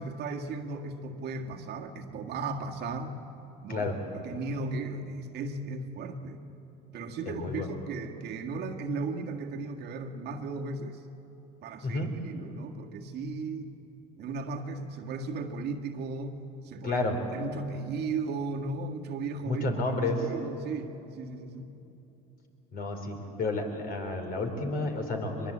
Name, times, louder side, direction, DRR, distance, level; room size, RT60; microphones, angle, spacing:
voice 1, 0.0-3.2 3.6-3.9 4.1-6.4 6.9-11.0 11.6-13.7 14.2-16.4 16.6-17.0 17.3-19.6 20.2-21.7, right 3 dB, 60° right, 3 dB, 1.8 m, -36 dB
voice 2, 7.3-7.7 11.8-12.1 16.8-17.2 19.4-20.3 22.7-25.5, left 2 dB, 50° left, 4 dB, 4.2 m, -31 dB
23.0 x 22.0 x 8.6 m, 2.9 s
supercardioid pair, 95°, 20 cm